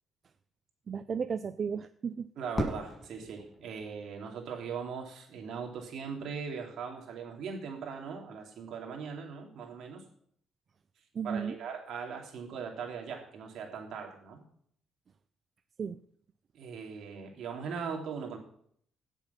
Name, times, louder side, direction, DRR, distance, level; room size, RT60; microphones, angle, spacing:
voice 1, 0.9-2.3 11.1-11.6 15.8-16.0, right 6 dB, 50° right, 11 dB, 0.5 m, -34 dB
voice 2, 2.4-10.0 11.2-14.4 16.5-18.4, right 6 dB, 75° right, 2 dB, 3.1 m, -40 dB
Fireworks, 2.5-4.7, equal, 25° left, 6.1 m, -38 dB
16.5 x 7.2 x 5.9 m, 0.65 s
cardioid pair, 90°, 0 cm